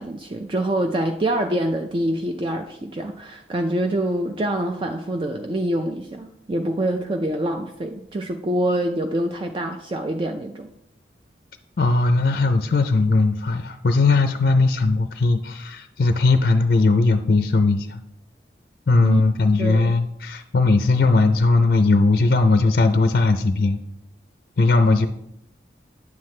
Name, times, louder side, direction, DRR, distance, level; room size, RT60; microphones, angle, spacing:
voice 1, 0.0-10.7 19.0-19.2 19.6-20.0, right 1 dB, 30° right, 5 dB, 0.4 m, -25 dB
voice 2, 11.8-18.0 18.9-23.8 24.6-25.1, left 3 dB, 55° left, 8 dB, 0.4 m, -18 dB
9.4 x 7.5 x 3.2 m, 0.80 s
head